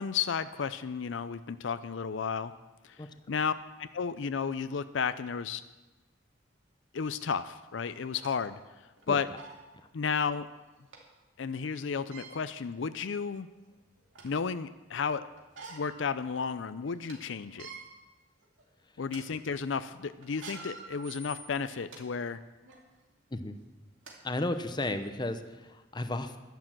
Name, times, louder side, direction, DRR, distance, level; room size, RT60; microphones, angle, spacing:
voice 1, 0.0-2.5 2.8-3.0 3.3-3.5 3.8-5.6 6.9-8.6 9.1-9.3 9.9-10.5 11.4-13.5 14.2-15.3 15.7-17.7 19.0-22.4, left 6 dB, 75° left, 13 dB, 0.5 m, -33 dB
sound 1, 7.2-7.3 7.9-8.4 9.0-9.1 9.4-9.6 10.9-11.0 12.0-12.4 13.1-13.2 13.7-14.4 15.4-16.0 16.4-16.5 16.9-17.1 17.5-17.8 18.4-18.6 19.0-19.2 20.2-22.0 22.6-22.8 23.7-23.8 24.1-24.2 24.8-24.9, right 3 dB, 85° right, 2.5 m, -47 dB
voice 2, 24.2-26.4, left 2 dB, 25° left, 9 dB, 0.8 m, -34 dB
11.5 x 10.5 x 7.6 m, 1.1 s
head